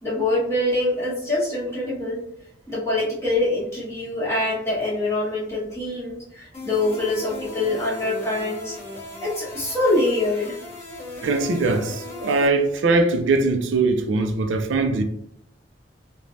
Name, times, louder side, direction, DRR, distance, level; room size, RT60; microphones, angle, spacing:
voice 1, 0.0-2.2 2.7-8.8 9.2-10.5, left 2 dB, 15° left, 1.3 m, -24 dB
sound 1, 6.5-12.5, left 1 dB, 35° left, 1.3 m, -37 dB
voice 2, 11.2-15.0, right 3 dB, 75° right, 0.4 m, -21 dB
3.2 x 2.2 x 2.5 m
head